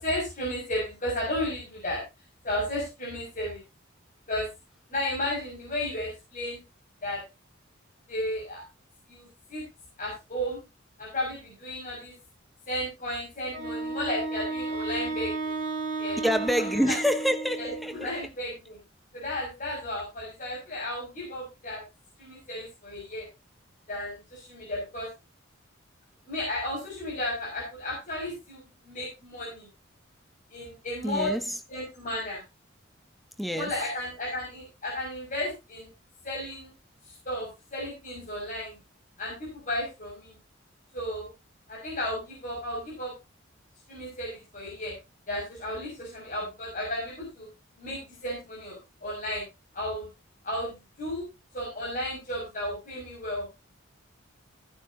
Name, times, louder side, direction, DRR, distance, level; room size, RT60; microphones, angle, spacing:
voice 1, 0.0-2.0 2.4-3.6 4.3-4.5 4.9-6.6 7.0-7.2 8.1-8.6 9.1-9.6 10.0-10.6 11.0-12.2 12.7-15.6 16.0-16.2 16.8-17.0 17.5-18.8 19.1-21.8 22.2-23.3 23.9-25.1 26.3-29.7 30.5-31.3 31.7-32.4 33.5-35.9 36.2-36.7 37.1-38.8 39.2-40.4 40.9-41.3 41.7-43.1 43.9-45.0 45.3-47.5 47.8-49.4 49.7-50.1 50.4-51.3 51.5-53.5, left 1 dB, 40° left, 6.4 m, -33 dB
Wind instrument woodwind instrument, 13.5-18.2, right 3 dB, 40° right, 5.9 m, -33 dB
voice 2, 16.2-18.1 31.0-31.5 33.4-33.7, equal, ahead, 1.0 m, -27 dB
16.0 x 9.9 x 2.8 m
head